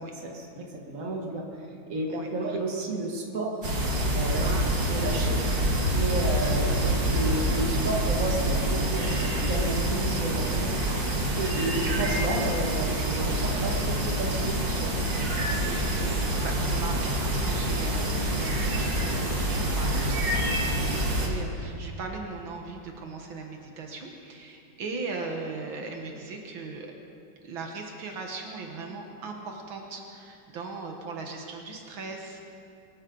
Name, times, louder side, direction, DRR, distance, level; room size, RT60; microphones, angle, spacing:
voice 1, 0.0-1.4 1.9-3.6 4.1-4.5 4.9-10.6 11.4-13.7 14.2-14.9, right 2 dB, 40° right, 0 dB, 2.2 m, -32 dB
voice 2, 2.1-2.6 4.4-4.9 10.6-11.0 15.5-26.9 27.4-32.4, right 3 dB, 80° right, 2 dB, 2.0 m, -39 dB
sound 1, 3.6-21.3, right 1 dB, 60° right, 2.7 m, -26 dB
23.0 x 13.5 x 3.9 m, 2.6 s
omnidirectional pair, 2.2 m